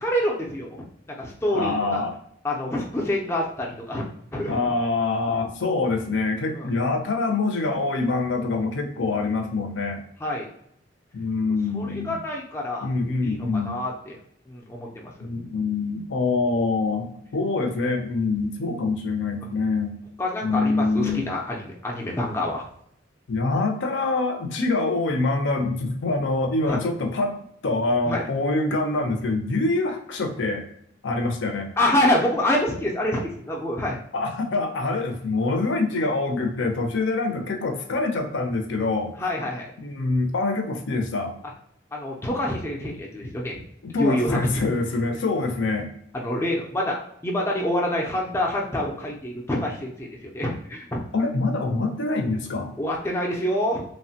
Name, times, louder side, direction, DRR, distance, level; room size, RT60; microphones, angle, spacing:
voice 1, 0.0-2.0 2.4-4.0 4.3-4.7 6.5-6.7 10.2-10.5 11.7-12.9 13.2-14.2 14.5-15.1 20.2-22.7 26.7-26.8 28.0-28.2 31.8-34.0 39.2-39.7 41.9-43.6 44.0-44.4 46.1-51.0 52.8-53.8, left 1 dB, 15° left, -2 dB, 0.4 m, -26 dB
voice 2, 1.5-2.2 4.5-10.0 11.1-12.2 12.8-13.8 15.2-19.9 20.4-21.3 23.3-27.4 27.6-30.7 31.0-31.7 34.1-39.1 39.8-41.3 43.8-45.9 51.1-52.7, left 3 dB, 70° left, 4 dB, 0.5 m, -25 dB
3.1 x 2.1 x 2.7 m, 0.71 s
head